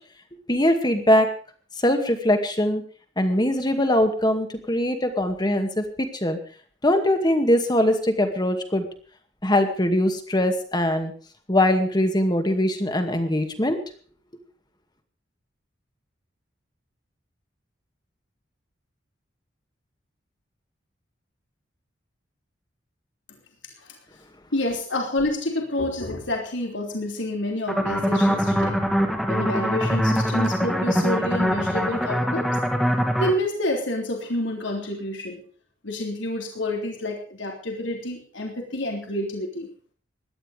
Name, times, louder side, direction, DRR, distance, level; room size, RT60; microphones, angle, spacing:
voice 1, 0.5-1.3 1.8-2.8 3.2-6.4 6.8-8.9 9.4-11.1 11.5-13.8, left 1 dB, 20° left, 6 dB, 2.2 m, -22 dB
voice 2, 24.5-28.8 29.3-32.5 33.2-35.4 35.8-39.7, left 1 dB, 75° left, 2 dB, 3.5 m, -28 dB
sound 1, 27.7-33.3, equal, ahead, 2.2 m, -23 dB
17.5 x 12.0 x 5.1 m, 0.43 s
head